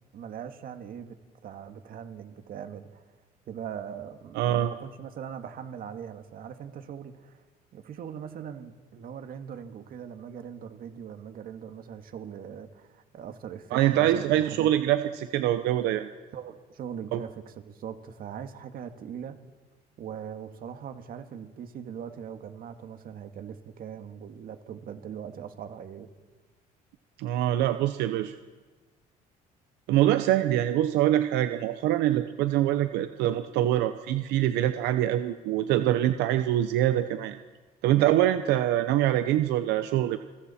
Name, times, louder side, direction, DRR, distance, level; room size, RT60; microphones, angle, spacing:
voice 1, 0.1-1.2 1.4-3.0 3.5-7.4 7.7-14.7 16.3-19.4 20.0-26.1, right 8 dB, 60° right, 7 dB, 1.9 m, -41 dB
voice 2, 4.3-4.7 13.7-16.1 17.1-17.2 27.2-28.3 29.9-37.4 37.8-40.2, right 13 dB, 90° right, 9 dB, 0.8 m, -24 dB
29.5 x 22.0 x 4.3 m, 1.3 s
cardioid pair, 110°, 17 cm